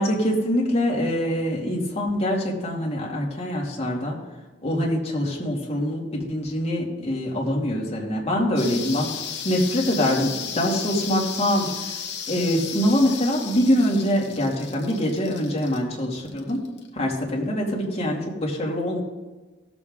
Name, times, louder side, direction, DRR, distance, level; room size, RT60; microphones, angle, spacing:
voice 1, 0.0-4.2 4.6-9.1 9.4-12.0 12.3-16.6 16.9-19.0, equal, 35° left, -3 dB, 2.3 m, -24 dB
sound 1, 8.6-16.9, left 8 dB, 60° left, 1.1 m, -34 dB
16.5 x 7.1 x 3.7 m, 1.3 s
head